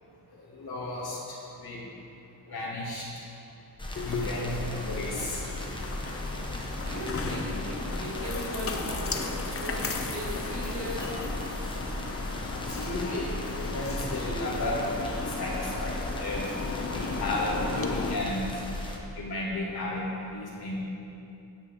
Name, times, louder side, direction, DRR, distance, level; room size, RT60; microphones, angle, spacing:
voice 1, 0.3-1.8 2.5-3.2 4.0-5.4 12.5-16.5 16.9-18.6 19.2-20.8, left 1 dB, 60° left, -6 dB, 2.6 m, -34 dB
sound 1, 3.8-19.0, left 1 dB, 10° left, 1.2 m, -36 dB
sound 2, 4.0-18.1, left 4 dB, 35° left, 0.7 m, -35 dB
voice 2, 6.8-11.4, equal, 65° right, -3 dB, 2.2 m, -38 dB
12.5 x 9.1 x 3.7 m, 2.8 s
wide cardioid pair, 115°, 42 cm